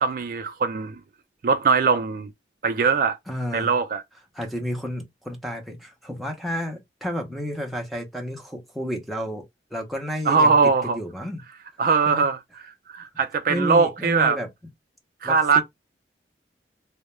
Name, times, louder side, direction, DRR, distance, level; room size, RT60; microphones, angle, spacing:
voice 1, 0.0-1.0 1.4-2.3 2.6-3.2 3.5-4.0 10.3-11.0 11.8-12.4 12.9-14.4 15.2-15.6, right 5 dB, 50° right, 0.3 m, -21 dB
voice 2, 3.3-3.7 4.3-9.4 9.7-10.5 10.8-11.4 12.1-12.3 13.5-14.5 15.2-15.6, equal, ahead, 0.5 m, -31 dB
2.2 x 2.1 x 2.9 m
head